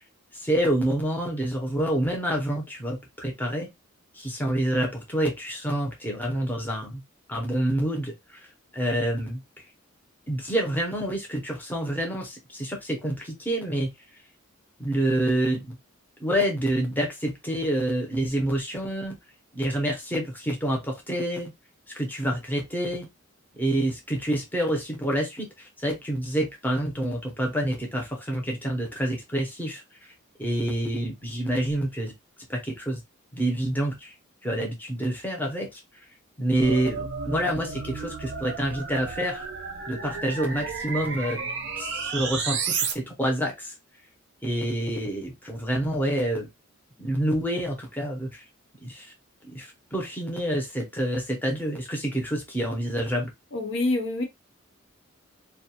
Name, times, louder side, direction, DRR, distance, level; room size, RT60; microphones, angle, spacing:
voice 1, 0.3-3.7 4.1-7.0 7.3-8.4 8.7-9.4 10.3-13.9 14.8-15.8 16.2-19.2 19.5-21.5 21.9-23.1 23.6-25.5 25.8-29.8 30.4-32.1 32.5-33.0 33.3-34.1 34.4-35.8 36.4-39.5 39.9-41.4 41.8-43.7 44.4-46.5 47.0-48.4 48.8-49.1 49.5-53.3, right 1 dB, 10° left, 0.7 m, -27 dB
sound 1, 36.6-42.9, right 5 dB, 50° right, 0.5 m, -32 dB
voice 2, 53.5-54.2, left 2 dB, 55° left, 0.5 m, -26 dB
2.3 x 2.2 x 2.8 m
head